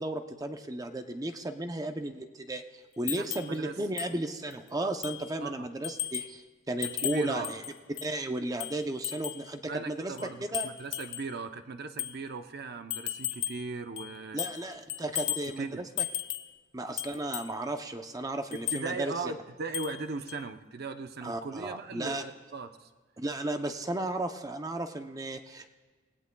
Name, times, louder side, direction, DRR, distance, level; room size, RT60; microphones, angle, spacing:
voice 1, 0.0-7.6 8.0-10.1 10.4-10.7 14.3-16.0 16.7-19.1 21.2-22.2 23.2-25.7, right 1 dB, 20° right, 6 dB, 0.6 m, -34 dB
sound 1, 3.1-3.5 4.0-4.1 4.5-4.6 5.0-5.3 5.8-6.3 6.8-8.1 8.6-9.5 10.2-11.3 12.0-12.2 12.9-13.7 14.0-14.6 14.9-15.5 16.0-16.5 17.0-17.5 18.5-18.9 19.7-20.0 20.3-20.4, left 13 dB, 65° left, 0.6 m, -35 dB
voice 2, 3.1-3.7 5.4-5.7 6.8-7.6 9.6-14.4 15.2-15.3 15.6-15.8 18.7-22.9, right 4 dB, 55° right, 8 dB, 0.7 m, -38 dB
26.5 x 17.0 x 2.3 m, 1.4 s
head